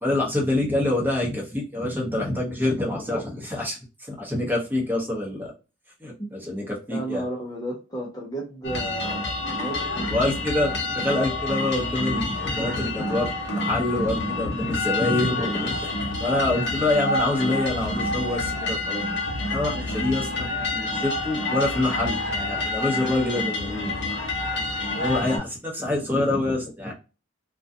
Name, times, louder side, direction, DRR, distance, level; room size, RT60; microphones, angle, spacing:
voice 1, 0.0-5.5 6.0-7.3 10.1-15.9 16.2-19.0 19.5-20.5 20.7-23.9 24.9-26.9, left 2 dB, 10° right, -2 dB, 0.8 m, -26 dB
voice 2, 6.9-10.3 19.7-19.8, right 1 dB, 20° left, -2 dB, 0.6 m, -34 dB
sound 1, 8.6-25.4, left 2 dB, 60° left, 0.8 m, -28 dB
2.4 x 2.2 x 2.5 m, 0.31 s
head